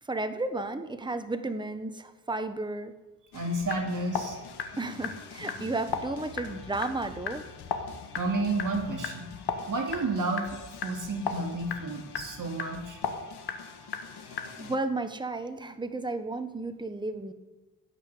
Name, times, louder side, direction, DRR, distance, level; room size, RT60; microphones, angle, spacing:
voice 1, 0.0-2.9 4.8-7.5 14.1-17.3, right 2 dB, 10° right, 9 dB, 1.1 m, -33 dB
sound 1, 3.3-14.8, left 6 dB, 80° left, 1.7 m, -37 dB
voice 2, 3.3-4.4 8.2-9.3 9.7-10.5 10.8-13.0, right 2 dB, 50° right, 2 dB, 2.7 m, -31 dB
17.0 x 5.9 x 8.4 m, 1.2 s
cardioid pair, 90°, 39 cm